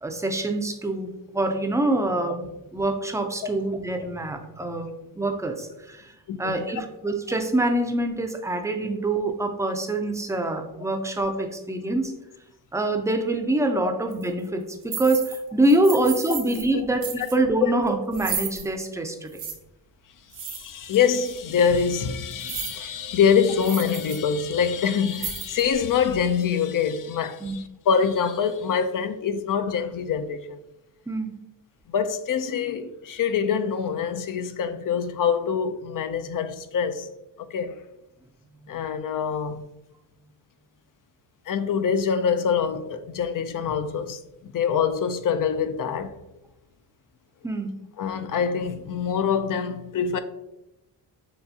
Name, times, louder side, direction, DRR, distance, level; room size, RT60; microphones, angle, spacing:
voice 1, 0.0-6.1 6.4-12.2 12.7-19.4 27.4-27.6 31.1-31.3 47.4-47.7, right 2 dB, 5° right, 0.5 m, -25 dB
voice 2, 6.3-6.6 17.6-17.7 20.4-30.6 31.9-37.1 37.4-37.8 38.7-39.6 41.5-46.1 48.0-50.2, left 7 dB, 45° left, 0.4 m, -25 dB
sound 1, 14.1-14.3 14.8-15.4 15.6-16.7 17.0-17.3 18.1-18.7 19.3-19.5 20.3-21.0 21.3-21.4 22.3-22.8 23.2-23.3 23.6-24.2 24.5-24.6 25.1-25.7, right 7 dB, 65° right, 1.0 m, -33 dB
6.8 x 2.4 x 2.7 m
cardioid pair, 95°, 45 cm